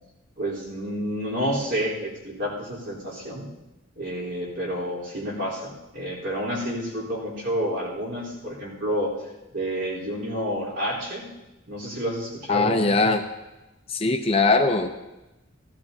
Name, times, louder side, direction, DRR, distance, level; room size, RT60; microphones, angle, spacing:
voice 1, 0.4-3.5 4.0-9.2 9.5-11.3 11.7-12.8, equal, 60° right, -6 dB, 3.9 m, -29 dB
voice 2, 12.5-13.2 13.9-14.9, left 3 dB, 30° left, 5 dB, 0.6 m, -21 dB
16.5 x 15.0 x 2.8 m, 1.0 s
head